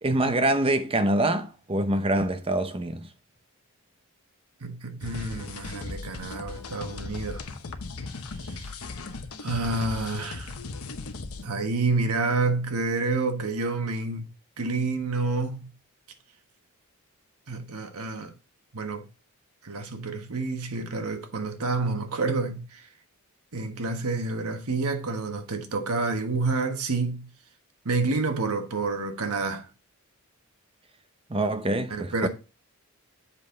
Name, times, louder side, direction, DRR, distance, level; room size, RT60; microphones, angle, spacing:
voice 1, 0.0-3.1 31.3-32.3, right 1 dB, 25° right, 0.7 m, -25 dB
voice 2, 4.6-7.4 8.4-8.7 9.4-10.6 11.4-14.3 14.6-15.7 17.5-18.3 18.7-19.1 19.6-22.8 23.5-27.3 27.8-29.7 31.9-32.3, right 3 dB, 90° right, 1.2 m, -29 dB
sound 1, 5.0-11.5, left 3 dB, 85° left, 0.9 m, -37 dB
7.3 x 5.4 x 3.8 m
head